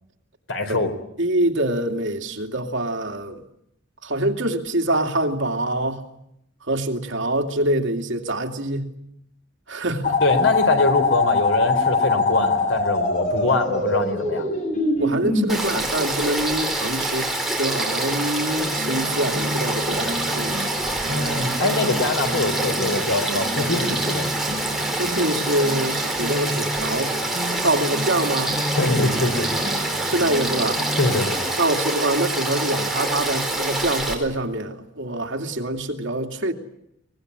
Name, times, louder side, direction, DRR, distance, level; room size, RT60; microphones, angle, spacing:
voice 1, 0.5-0.9 10.2-14.5 21.1-24.3 28.7-29.5 31.0-31.4, left 2 dB, 90° left, 4.2 m, -23 dB
voice 2, 1.2-3.4 4.0-6.0 6.6-8.9 9.7-10.2 15.0-20.6 25.0-27.1 27.6-28.6 30.0-30.8 31.6-36.5, right 1 dB, 70° right, 2.6 m, -25 dB
sound 1, 10.0-15.5, left 3 dB, 40° left, 7.3 m, -22 dB
Frog / Stream, 15.5-34.1, right 1 dB, ahead, 4.6 m, -26 dB
sound 2, 18.6-31.1, equal, 30° right, 5.1 m, -32 dB
23.5 x 20.5 x 9.8 m
head